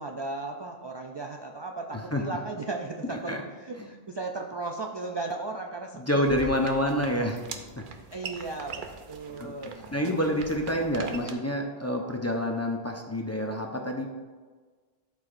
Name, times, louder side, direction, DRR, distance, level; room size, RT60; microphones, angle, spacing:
voice 1, 0.0-6.5 6.8-7.0 8.1-10.2 11.2-11.3, right 3 dB, 40° right, 2 dB, 0.3 m, -36 dB
voice 2, 6.0-7.8 9.4-9.5 9.9-14.1, equal, 20° left, 1 dB, 0.6 m, -28 dB
sound 1, 6.2-11.3, right 5 dB, 55° right, 0.8 m, -42 dB
12.5 x 4.8 x 2.6 m, 1.4 s
omnidirectional pair, 1.1 m